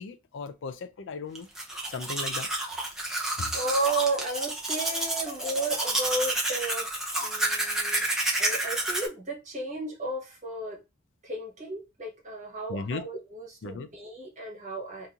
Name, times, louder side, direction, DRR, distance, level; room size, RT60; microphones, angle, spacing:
voice 1, 0.0-1.5 1.8-2.5 3.4-3.6 12.7-13.0 13.6-13.9, left 4 dB, 65° left, 0.4 m, -36 dB
Domestic sounds home sounds, 1.4-9.1, right 1 dB, ahead, 0.7 m, -30 dB
voice 2, 2.9-8.1 8.4-10.8 11.2-15.1, right 2 dB, 35° right, 1.3 m, -33 dB
2.9 x 2.6 x 3.5 m
head